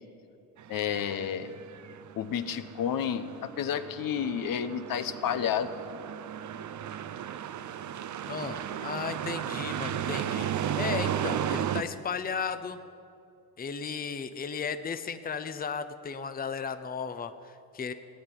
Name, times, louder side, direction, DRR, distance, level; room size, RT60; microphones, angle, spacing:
sound 1, 0.6-11.8, right 9 dB, 45° right, 0.7 m, -35 dB
voice 1, 0.7-1.5 2.2-5.7, left 8 dB, 55° left, 10 dB, 1.0 m, -30 dB
voice 2, 8.3-12.8 13.6-17.9, left 6 dB, 20° left, 10 dB, 0.8 m, -35 dB
16.5 x 8.7 x 10.0 m, 2.5 s
supercardioid pair, 80°, 40 cm